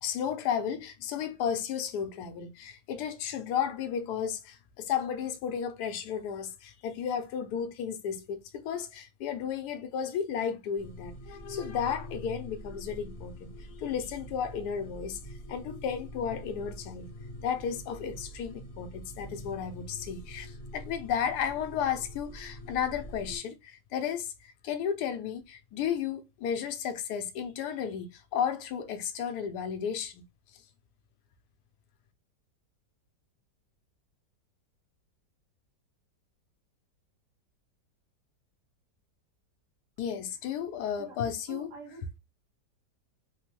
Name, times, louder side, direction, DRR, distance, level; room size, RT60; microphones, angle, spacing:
voice 1, 0.0-15.2 15.5-17.1 17.4-30.2 30.5-30.6 40.0-41.7, left 8 dB, 75° left, 1.1 m, -33 dB
sound 1, 10.8-23.4, equal, 40° left, 0.9 m, -45 dB
voice 2, 41.5-42.2, right 4 dB, 75° right, 1.4 m, -46 dB
3.3 x 2.1 x 2.9 m
omnidirectional pair, 1.9 m